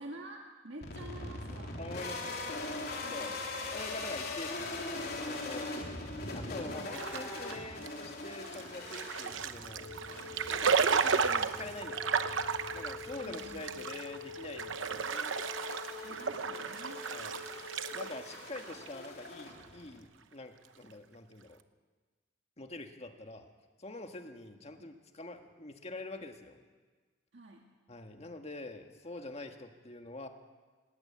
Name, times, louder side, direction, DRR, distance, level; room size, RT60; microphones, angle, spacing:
voice 1, 0.0-1.8 3.0-3.4 6.6-7.0 13.2-13.9 16.0-17.1 27.3-27.7, right 1 dB, 65° right, 1 dB, 1.8 m, -49 dB
sound 1, 0.8-20.0, left 2 dB, 55° left, 3.5 m, -42 dB
voice 2, 1.8-2.4 3.1-3.3 3.7-5.7 6.3-10.0 10.5-12.1 12.7-15.3 17.1-17.3 17.9-21.6 22.6-23.5 23.8-26.6 27.9-30.3, left 2 dB, 35° left, 5 dB, 1.6 m, -45 dB
sound 2, 6.9-19.5, right 6 dB, 80° right, 0.9 m, -34 dB
Wind instrument woodwind instrument, 9.7-18.2, left 5 dB, 85° left, 4.4 m, -47 dB
19.0 x 18.5 x 8.6 m, 1.4 s
head